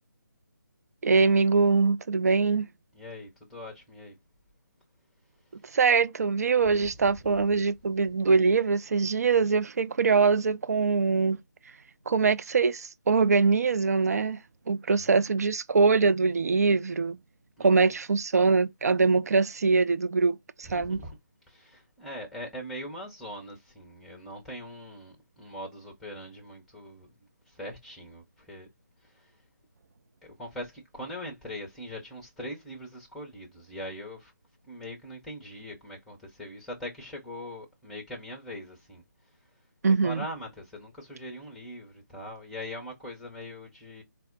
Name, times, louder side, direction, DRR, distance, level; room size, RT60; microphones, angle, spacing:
voice 1, 1.0-2.7 5.7-11.4 12.1-14.4 14.7-17.2 17.6-21.0 39.8-40.3, right 4 dB, 50° right, 0.4 m, -23 dB
voice 2, 2.9-4.2 6.7-6.8 14.9-15.2 17.6-17.9 20.6-21.2 21.5-27.1 27.5-28.7 29.1-29.3 30.2-34.3 34.6-39.0 39.9-44.0, left 1 dB, ahead, 0.6 m, -41 dB
4.3 x 2.0 x 3.7 m
figure-of-eight pair, 155°, 10 cm